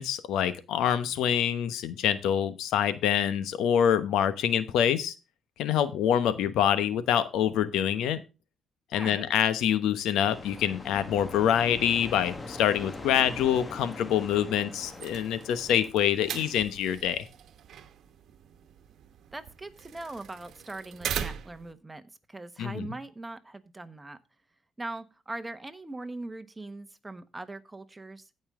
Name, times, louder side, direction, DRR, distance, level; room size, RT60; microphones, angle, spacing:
voice 1, 0.0-5.1 5.6-8.2 8.9-17.2 22.6-22.9, left 9 dB, 85° left, 13 dB, 1.0 m, -26 dB
voice 2, 8.9-9.3 19.3-22.0 22.3-24.2 24.8-28.4, right 2 dB, 15° right, 10 dB, 1.2 m, -41 dB
sound 1, 10.2-15.9, left 2 dB, 25° left, 1.5 m, -42 dB
sound 2, 14.8-21.7, right 9 dB, 70° right, 1.1 m, -40 dB
16.0 x 5.5 x 3.7 m, 0.29 s
cardioid pair, 90°, 0 cm